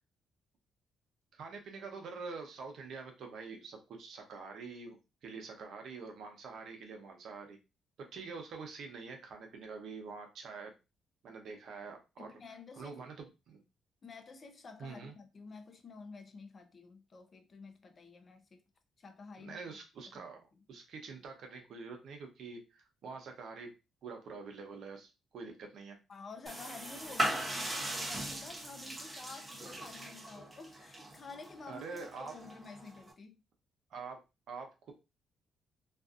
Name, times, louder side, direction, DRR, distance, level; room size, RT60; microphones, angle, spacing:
voice 1, 1.3-5.0 5.2-7.6 8.1-10.7 11.2-12.3 12.7-13.6 14.8-15.1 19.4-23.7 24.0-26.0 31.7-32.3 33.9-34.2 34.5-34.9, right 4 dB, 70° right, 0.8 m, -46 dB
voice 2, 12.2-13.0 14.0-18.6 19.0-19.6 20.1-20.3 26.1-33.4, left 4 dB, 40° left, 0.6 m, -50 dB
sound 1, 26.5-33.1, right 1 dB, 20° right, 0.7 m, -39 dB
2.5 x 2.5 x 2.4 m
cardioid pair, 90°, 0 cm